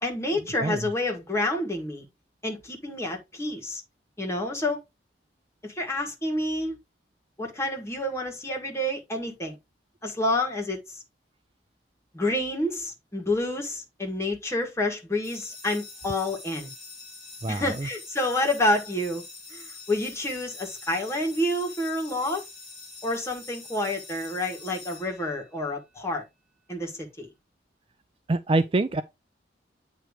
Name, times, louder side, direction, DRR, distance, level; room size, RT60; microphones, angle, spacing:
voice 1, 0.0-2.1 2.4-3.8 4.2-4.8 5.6-6.8 7.4-9.6 10.0-11.0 12.1-16.7 17.5-19.2 19.5-22.4 23.0-26.2 26.7-27.3, left 1 dB, 15° left, 1.8 m, -28 dB
voice 2, 0.6-0.9 17.4-17.9 28.3-29.0, right 2 dB, 30° right, 0.4 m, -25 dB
sound 1, 15.2-25.7, left 3 dB, ahead, 2.7 m, -45 dB
9.1 x 3.1 x 4.8 m
head